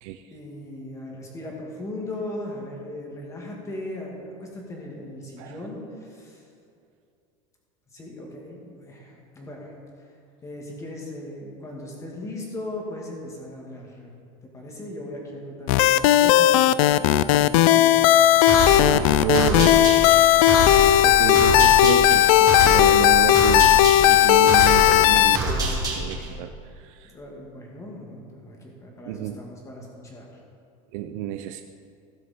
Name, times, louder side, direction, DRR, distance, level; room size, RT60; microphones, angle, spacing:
voice 1, 0.3-6.4 7.9-9.7 10.4-14.1 14.5-18.0 27.0-30.3, left 1 dB, 15° left, -1 dB, 2.1 m, -38 dB
sound 1, 15.7-25.4, left 13 dB, 85° left, 0.4 m, -16 dB
sound 2, 18.5-26.3, right 1 dB, 20° right, 2.4 m, -27 dB
voice 2, 18.8-20.0 21.0-25.6 25.9-26.5 26.8-27.1 29.1-29.4 30.9-31.6, right 10 dB, 70° right, 7 dB, 0.5 m, -30 dB
16.5 x 6.4 x 4.4 m, 2.5 s
supercardioid pair, 150°, 18 cm